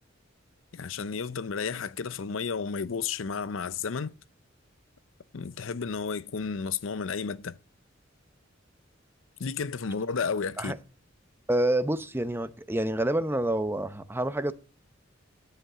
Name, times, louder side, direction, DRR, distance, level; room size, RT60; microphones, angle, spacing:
voice 1, 0.7-4.1 5.3-7.6 9.4-10.7, left 5 dB, 85° left, 0.6 m, -32 dB
voice 2, 11.5-14.5, right 1 dB, 10° right, 0.7 m, -27 dB
10.5 x 8.1 x 9.9 m
head